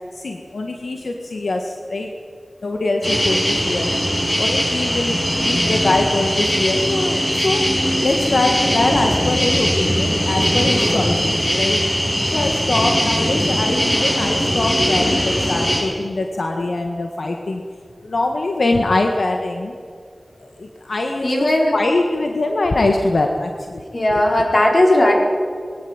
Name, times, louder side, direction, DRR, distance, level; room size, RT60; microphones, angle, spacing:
voice 1, 0.1-2.1 2.6-3.9 4.4-7.7 8.0-11.8 12.3-17.6 18.0-19.7 20.4-23.8 24.1-24.2, left 2 dB, 85° left, 3 dB, 1.6 m, -23 dB
sound 1, 3.0-15.8, equal, 25° left, 7.0 m, -20 dB
voice 2, 21.2-21.7 23.9-25.1, left 1 dB, 50° left, 1 dB, 4.6 m, -16 dB
21.5 x 17.5 x 9.0 m, 2.1 s
wide cardioid pair, 75°, 0 cm